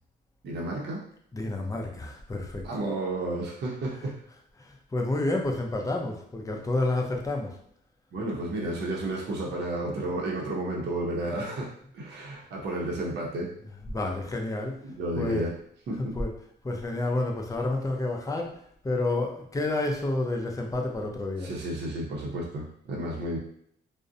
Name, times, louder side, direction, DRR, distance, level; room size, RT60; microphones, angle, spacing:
voice 1, 0.4-1.0 2.6-4.1 8.1-11.7 11.9-13.5 14.8-15.5 15.9-16.1 21.4-23.4, right 1 dB, 55° right, -2 dB, 0.7 m, -32 dB
voice 2, 1.3-2.7 4.6-7.6 13.9-14.8 15.2-15.5 16.0-16.3 16.6-21.5, left 2 dB, 15° left, 1 dB, 0.5 m, -29 dB
2.5 x 2.0 x 2.6 m, 0.65 s
cardioid pair, 90°, 20 cm